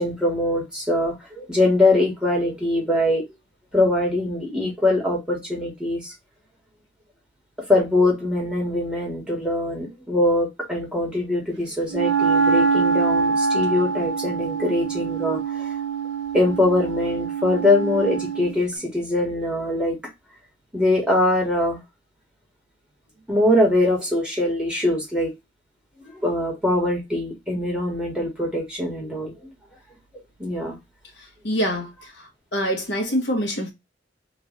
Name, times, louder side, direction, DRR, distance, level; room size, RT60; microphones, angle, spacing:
voice 1, 0.0-3.2 3.7-6.1 7.7-15.7 16.3-20.0 20.7-21.8 23.3-25.3 26.1-29.5 30.4-30.8, left 1 dB, 5° right, 1.5 m, -22 dB
Wind instrument woodwind instrument, 11.9-18.6, right 5 dB, 80° right, 0.9 m, -24 dB
voice 2, 31.4-33.7, equal, 65° left, 1.1 m, -25 dB
3.1 x 2.5 x 3.8 m
head